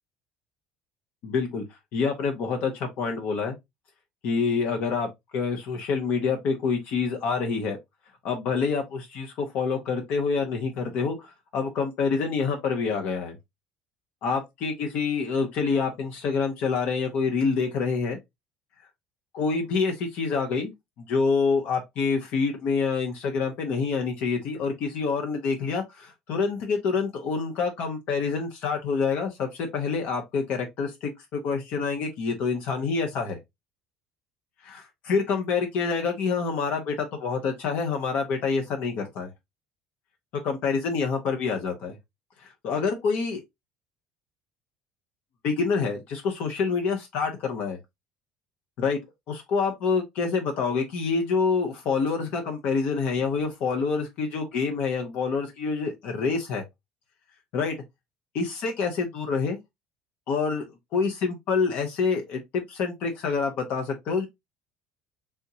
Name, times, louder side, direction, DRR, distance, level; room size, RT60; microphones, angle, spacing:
voice 1, 1.2-3.5 4.2-5.1 5.3-7.8 8.2-13.3 14.2-18.2 19.3-20.7 21.1-33.4 34.6-39.3 40.4-42.0 42.4-43.4 45.4-47.8 48.8-49.0 49.3-56.6 57.5-57.7 58.3-59.6 60.3-60.6 60.9-64.3, left 5 dB, 65° left, 0.8 m, -27 dB
3.5 x 2.8 x 2.7 m
supercardioid pair, 90°, 3 cm